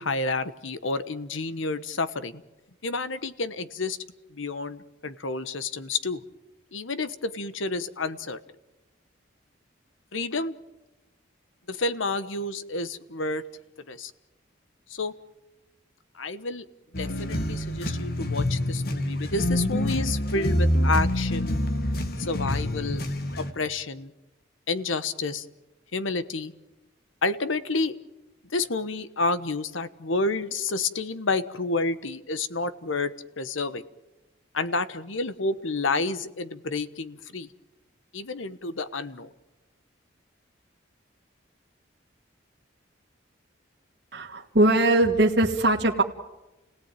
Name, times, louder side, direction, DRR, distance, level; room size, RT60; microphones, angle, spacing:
voice 1, 0.0-2.4 2.8-4.0 4.3-6.2 6.7-8.4 10.1-10.5 11.7-13.4 13.9-14.1 14.9-15.1 16.1-16.6 17.0-21.6 22.2-23.0 23.4-24.1 24.7-25.5 25.9-26.5 27.2-28.0 28.5-33.8 34.5-37.5 38.1-39.3, left 3 dB, 85° left, 13 dB, 1.2 m, -29 dB
sound 1, 16.9-23.5, left 1 dB, 50° left, 2.0 m, -26 dB
voice 2, 44.1-46.0, right 1 dB, 55° right, 0 dB, 1.7 m, -21 dB
30.0 x 17.5 x 9.1 m, 1.0 s
head